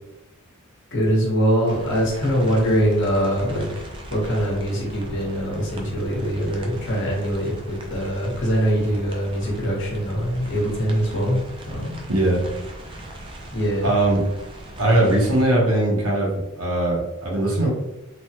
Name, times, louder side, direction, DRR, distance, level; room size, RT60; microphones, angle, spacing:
voice 1, 0.9-3.8 4.1-12.0 13.5-13.9, equal, 55° left, -3 dB, 0.9 m, -23 dB
sound 1, 1.7-15.4, right 1 dB, 25° right, 0.3 m, -39 dB
voice 2, 12.1-12.5 13.8-14.2 14.8-17.7, right 1 dB, 75° right, -2 dB, 0.9 m, -20 dB
3.1 x 2.1 x 2.8 m, 0.93 s
head